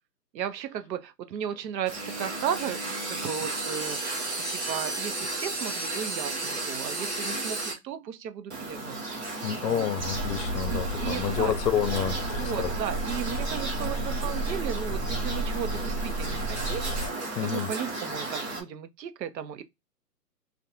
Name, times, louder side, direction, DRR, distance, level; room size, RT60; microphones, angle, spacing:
voice 1, 0.3-4.0 4.3-9.0 9.6-9.9 10.7-11.6 12.4-16.9 17.4-19.6, right 9 dB, 90° right, 0.6 m, -35 dB
sound 1, 1.9-7.7 8.5-18.6, right 2 dB, 45° right, 0.7 m, -34 dB
voice 2, 9.4-12.7 17.4-17.7, left 8 dB, 75° left, 0.6 m, -29 dB
sound 2, 10.0-17.1, right 1 dB, 30° left, 0.6 m, -32 dB
2.3 x 2.2 x 2.8 m
hypercardioid pair, 170°, 49 cm